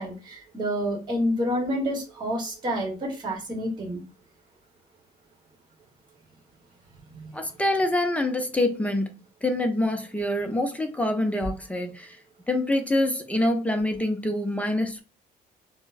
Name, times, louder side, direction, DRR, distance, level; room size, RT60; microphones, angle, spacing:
voice 1, 0.0-4.0 7.1-7.3, equal, 25° right, 1.2 m, -28 dB
voice 2, 7.3-9.1 9.4-12.2 12.5-15.0, left 1 dB, 10° left, 0.6 m, -25 dB
4.2 x 2.1 x 2.5 m
cardioid pair, 110°, 17 cm